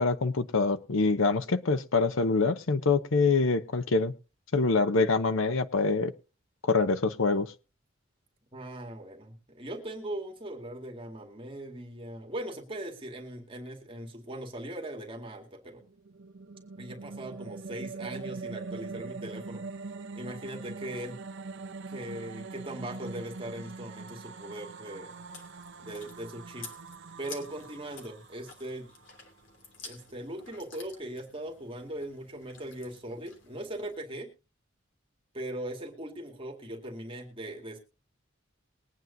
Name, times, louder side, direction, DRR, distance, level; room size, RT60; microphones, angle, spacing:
voice 1, 0.0-4.1 4.5-6.1 6.6-7.5, left 4 dB, 90° left, 0.8 m, -25 dB
voice 2, 8.5-15.8 16.8-19.6 20.2-21.2 21.9-25.1 25.8-26.7 27.2-28.9 29.8-34.3 35.3-37.8, right 1 dB, 25° right, 2.1 m, -40 dB
sound 1, 15.8-29.2, right 4 dB, 65° right, 0.8 m, -43 dB
Chewing mastication, 25.1-34.0, left 4 dB, 70° left, 2.9 m, -51 dB
21.5 x 9.2 x 2.7 m
head